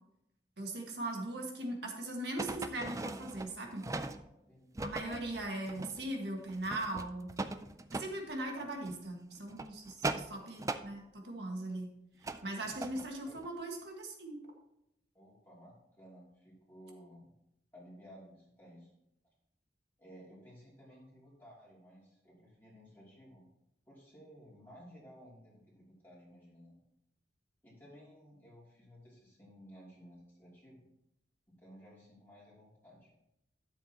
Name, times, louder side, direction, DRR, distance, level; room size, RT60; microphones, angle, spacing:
voice 1, 0.6-3.8 4.8-7.3 7.9-11.9 12.2-14.4, right 1 dB, 65° right, 2 dB, 1.8 m, -40 dB
sound 1, 2.4-4.3 4.7-6.1 6.5-8.1 8.7-9.0 9.4-10.9 12.2-13.1 13.4-13.5, right 2 dB, 20° right, 0.4 m, -39 dB
voice 2, 15.1-17.3 17.7-18.9 20.0-23.5 23.9-26.8 27.6-30.8 31.5-33.1, equal, 10° left, -6 dB, 2.9 m, -56 dB
12.5 x 7.4 x 3.0 m, 0.83 s
head